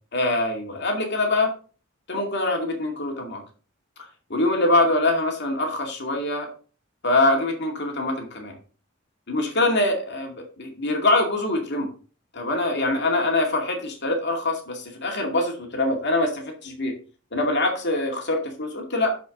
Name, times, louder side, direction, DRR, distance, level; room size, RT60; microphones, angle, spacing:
voice 1, 0.1-1.5 2.1-3.4 4.3-6.5 7.0-8.5 9.3-11.9 12.3-16.9 17.3-19.2, left 2 dB, 55° left, 2 dB, 2.3 m, -24 dB
12.5 x 5.2 x 3.8 m, 0.39 s
head